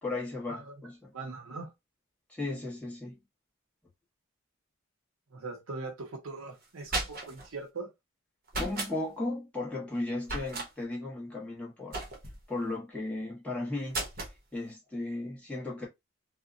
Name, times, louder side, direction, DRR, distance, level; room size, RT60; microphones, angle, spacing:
voice 1, 0.0-1.1 2.3-3.2 8.6-12.0 12.5-14.0 14.5-15.9, left 2 dB, 5° left, 1.2 m, -35 dB
voice 2, 1.1-1.7 5.3-7.9, right 3 dB, 80° right, 0.8 m, -41 dB
sound 1, 6.6-7.5 8.5-8.9 10.2-10.7 11.9-12.4 13.9-14.4, right 2 dB, 45° right, 0.9 m, -35 dB
2.8 x 2.2 x 2.4 m
head